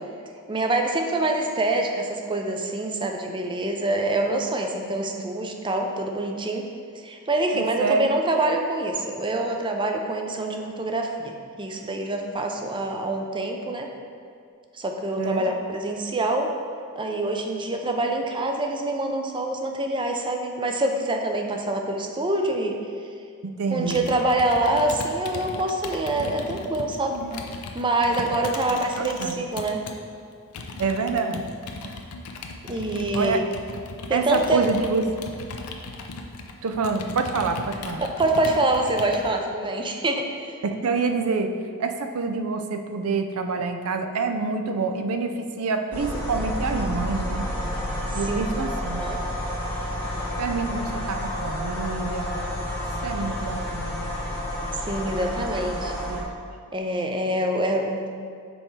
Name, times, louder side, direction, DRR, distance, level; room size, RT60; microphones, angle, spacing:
voice 1, 0.5-6.7 7.0-13.9 14.7-16.5 17.0-22.8 23.7-27.2 27.7-29.9 32.7-33.4 34.1-34.6 38.0-40.6 48.3-48.4 49.0-49.2 54.9-55.9 56.7-58.1, right 2 dB, 20° right, 3 dB, 0.5 m, -25 dB
voice 2, 7.5-8.1 15.2-15.5 23.4-24.0 27.1-27.4 28.7-29.3 30.8-31.4 33.1-33.4 34.1-35.0 36.6-38.0 40.6-47.5 48.1-49.0 50.4-52.3 53.0-54.1 55.4-55.5 56.1-56.3, right 4 dB, 70° right, 6 dB, 0.5 m, -27 dB
Computer keyboard, 23.9-30.0 30.5-39.3, left 3 dB, 90° left, 0.6 m, -37 dB
sound 1, 45.9-56.2, equal, 10° left, 1.0 m, -30 dB
5.5 x 4.3 x 4.6 m, 2.2 s
head